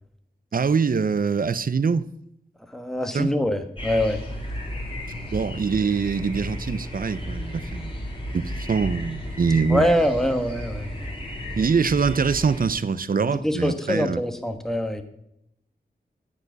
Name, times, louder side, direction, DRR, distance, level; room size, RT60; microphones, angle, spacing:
voice 1, 0.5-2.1 3.1-3.4 5.3-7.9 8.3-9.9 11.6-14.2, right 5 dB, 50° right, 0.6 m, -24 dB
voice 2, 2.7-4.2 9.7-11.1 13.2-15.0, equal, ahead, 1.2 m, -24 dB
sound 1, 3.8-12.7, equal, 30° left, 3.2 m, -34 dB
13.5 x 4.9 x 8.0 m
wide cardioid pair, 65°, 18 cm